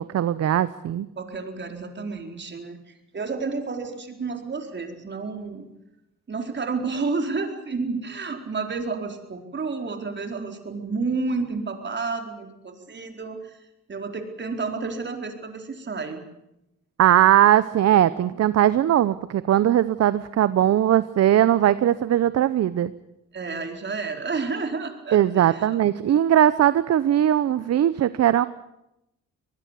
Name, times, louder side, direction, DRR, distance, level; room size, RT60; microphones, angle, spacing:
voice 1, 0.0-1.1 17.0-22.9 25.1-28.5, right 11 dB, 55° right, 15 dB, 0.8 m, -19 dB
voice 2, 1.1-5.7 6.3-13.6 13.9-16.2 23.3-25.8, right 4 dB, 35° right, 5 dB, 4.4 m, -31 dB
24.0 x 20.0 x 8.4 m, 0.87 s
cardioid pair, 90°, 30 cm